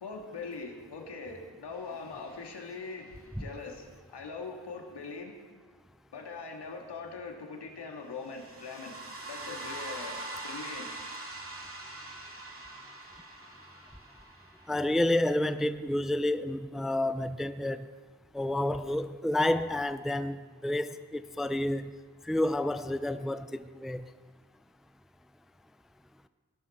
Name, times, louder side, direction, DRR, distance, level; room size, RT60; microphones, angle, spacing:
voice 1, 0.0-5.3 6.1-9.0 9.3-10.9, left 4 dB, 75° left, 1 dB, 2.2 m, -42 dB
sound 1, 1.9-3.0 8.2-15.0, right 2 dB, 35° right, 2.5 m, -43 dB
voice 2, 14.7-17.9 18.3-21.9 22.3-24.0, left 1 dB, ahead, 11 dB, 0.5 m, -30 dB
16.0 x 11.5 x 4.4 m, 1.4 s
cardioid pair, 45°, 40 cm